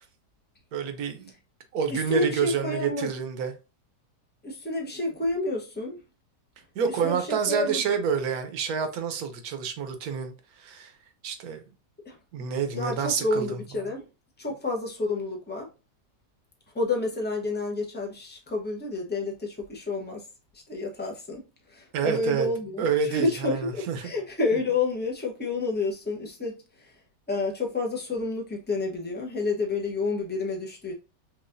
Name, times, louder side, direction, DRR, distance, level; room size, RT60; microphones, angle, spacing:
voice 1, 0.7-1.3 1.7-3.5 6.7-10.9 11.2-11.6 12.3-13.6 21.9-22.5 22.8-24.1, right 6 dB, 65° right, 1.2 m, -28 dB
voice 2, 1.9-3.1 4.4-6.0 6.8-7.8 12.0-12.2 12.7-14.0 14.4-15.7 16.7-20.2 20.7-26.9 27.3-30.9, left 2 dB, 10° left, 0.4 m, -29 dB
6.2 x 2.5 x 2.6 m
omnidirectional pair, 1.9 m